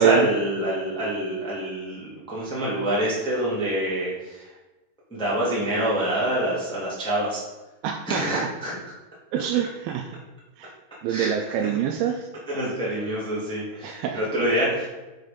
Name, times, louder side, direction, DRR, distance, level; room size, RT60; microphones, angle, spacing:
voice 1, 0.0-4.4 5.1-7.4 8.0-8.8 11.1-11.7 12.5-14.9, right 1 dB, ahead, -7 dB, 1.4 m, -26 dB
voice 2, 7.8-8.5 9.3-10.0 10.6-10.7 11.0-12.2 13.8-14.2, right 9 dB, 80° right, 4 dB, 2.3 m, -25 dB
6.4 x 5.7 x 5.2 m, 1.1 s
omnidirectional pair, 4.6 m